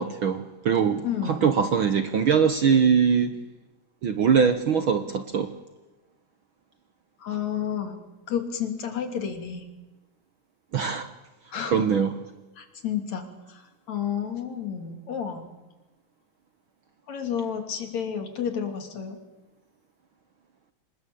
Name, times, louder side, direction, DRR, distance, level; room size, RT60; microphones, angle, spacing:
voice 1, 0.0-3.4 4.0-5.5 10.7-11.1 11.6-12.1, right 6 dB, 60° right, 1.5 m, -22 dB
voice 2, 1.0-1.5 7.2-8.0 8.3-9.7 11.5-11.8 12.6-15.5 17.1-19.2, left 8 dB, 70° left, 4.1 m, -31 dB
26.5 x 20.5 x 8.6 m
omnidirectional pair, 3.3 m